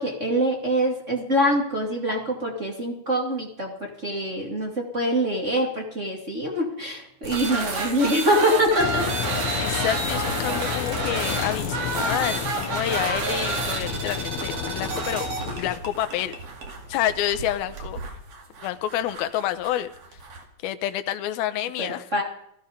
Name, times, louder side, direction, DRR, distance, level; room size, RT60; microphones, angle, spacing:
voice 1, 0.0-9.4 21.8-22.2, equal, 25° right, 2.2 m, -24 dB
sound 1, 7.2-20.4, right 3 dB, 50° right, 3.1 m, -30 dB
Engine, 8.8-15.8, left 11 dB, 70° left, 1.7 m, -32 dB
voice 2, 9.6-15.3 15.6-16.4 16.9-18.0 18.6-19.9 20.6-22.1, left 12 dB, 85° left, 2.7 m, -28 dB
17.5 x 15.0 x 5.2 m
omnidirectional pair, 4.2 m